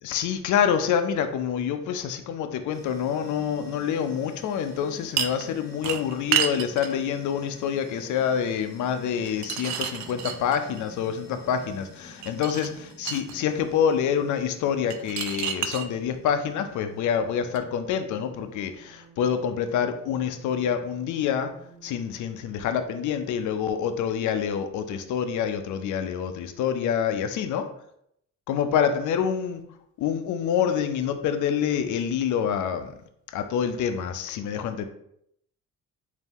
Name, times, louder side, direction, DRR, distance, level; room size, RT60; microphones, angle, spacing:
voice 1, 0.0-21.5 21.8-27.7 28.5-29.6 30.0-32.9 33.3-34.8, left 8 dB, 75° left, 8 dB, 0.5 m, -27 dB
sound 1, 2.7-17.5, right 1 dB, 10° left, 1.3 m, -49 dB
sound 2, 5.2-5.5 5.8-7.0 9.3-10.8 12.2-13.4 14.9-15.9 17.5-17.6, right 9 dB, 70° right, 0.5 m, -29 dB
sound 3, 16.7-23.5, right 3 dB, 10° right, 0.8 m, -54 dB
4.0 x 2.7 x 3.6 m, 0.73 s
cardioid pair, 90°, 30 cm